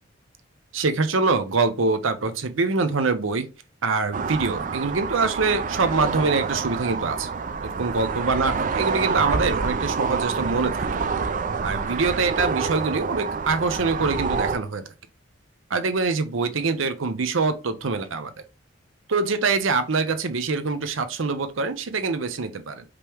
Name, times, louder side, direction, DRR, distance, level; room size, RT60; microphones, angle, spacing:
voice 1, 0.7-3.5 3.8-7.3 7.8-10.9 11.6-14.8 15.7-18.3 19.1-22.8, right 4 dB, 85° right, 0.7 m, -24 dB
sound 1, 4.1-14.6, right 5 dB, 40° right, 0.4 m, -27 dB
5.1 x 3.0 x 3.4 m
head